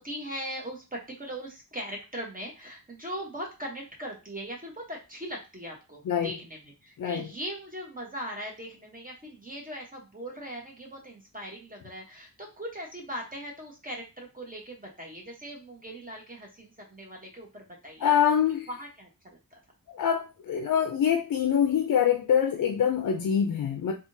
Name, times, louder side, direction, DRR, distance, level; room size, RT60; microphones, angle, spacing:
voice 1, 0.0-18.1 18.7-19.1 19.5-19.6, equal, 25° right, 0.9 m, -40 dB
voice 2, 18.0-18.7 19.9-23.9, left 8 dB, 65° left, 0.4 m, -25 dB
3.5 x 2.4 x 2.6 m
wide cardioid pair, 105°, 35 cm